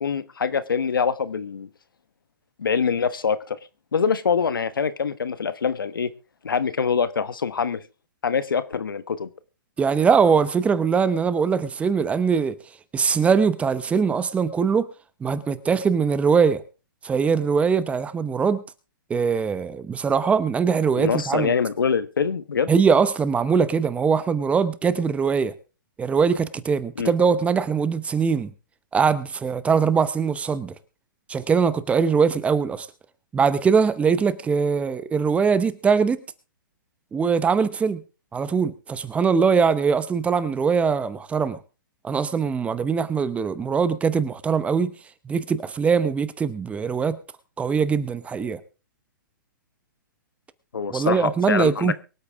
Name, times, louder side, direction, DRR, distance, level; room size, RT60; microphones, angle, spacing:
voice 1, 0.0-1.7 2.6-3.6 3.9-6.1 6.4-7.8 8.2-9.3 21.0-22.7 27.0-27.1 50.7-51.9, left 6 dB, 85° left, 1.2 m, -24 dB
voice 2, 9.8-12.6 12.9-14.9 15.2-16.6 17.0-18.6 19.1-21.5 22.7-25.5 26.0-28.5 28.9-30.7 31.3-32.9 33.3-36.2 37.1-38.0 38.3-41.6 42.0-44.9 45.2-47.2 47.6-48.6 50.9-51.9, right 6 dB, 10° right, 0.8 m, -22 dB
23.5 x 8.4 x 3.6 m
hypercardioid pair, 135°, 11 cm